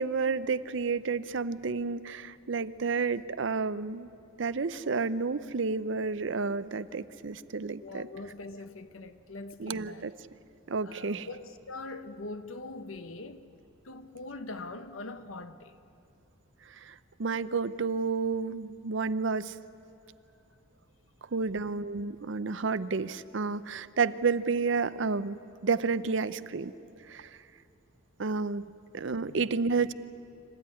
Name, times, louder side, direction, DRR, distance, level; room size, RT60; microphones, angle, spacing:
voice 1, 0.0-4.1 4.4-8.1 9.6-10.1 10.7-11.3 16.7-19.5 21.3-26.7 27.1-27.3 28.2-28.7 28.9-29.9, right 4 dB, 65° right, 0.6 m, -30 dB
voice 2, 7.8-10.1 10.8-13.5 13.8-15.8 29.2-29.5, left 2 dB, 90° left, 1.1 m, -42 dB
26.5 x 15.0 x 9.9 m
head